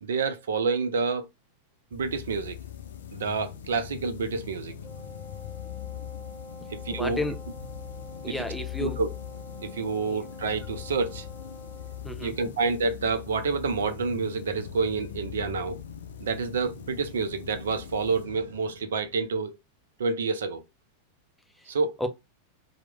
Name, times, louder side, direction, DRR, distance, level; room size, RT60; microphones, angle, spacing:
voice 1, 0.0-1.3 1.9-2.6 3.1-4.7 6.7-7.2 8.2-8.3 8.8-9.1 9.6-11.3 12.2-15.8 16.2-19.5 20.0-20.6 21.7-21.9, right 4 dB, 65° right, 0.5 m, -28 dB
sound 1, 1.9-19.4, left 9 dB, 65° left, 0.4 m, -41 dB
Wind instrument woodwind instrument, 4.8-12.1, left 1 dB, 25° left, 1.0 m, -47 dB
voice 2, 6.9-7.4 8.2-9.0 10.0-10.2 12.0-12.3 22.0-22.1, left 1 dB, ahead, 0.5 m, -32 dB
2.9 x 2.0 x 3.5 m
figure-of-eight pair, 90°, 0 cm